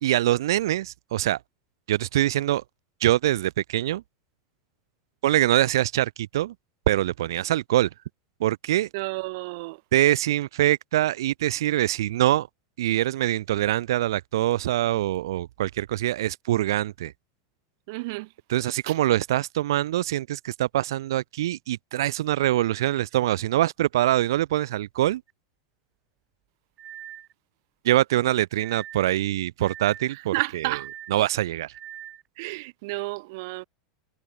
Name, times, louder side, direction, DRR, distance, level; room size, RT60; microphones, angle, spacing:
voice 1, 0.0-1.4 1.9-2.6 3.0-4.0 5.2-6.5 6.9-7.9 8.4-8.9 9.9-12.5 12.8-17.1 18.5-25.2 27.8-30.8 31.1-31.7, right 14 dB, 80° right, 0.9 m, -24 dB
voice 2, 8.9-9.8 17.9-18.3 18.9-19.0 30.3-30.8 32.4-33.6, right 25 dB, 50° right, 1.1 m, -31 dB
sound 1, 25.3-25.4 26.8-27.3 28.6-29.1 29.6-30.1 30.7-31.2 31.7-32.2, right 11 dB, 25° right, 4.8 m, -42 dB
supercardioid pair, 165°, 2 cm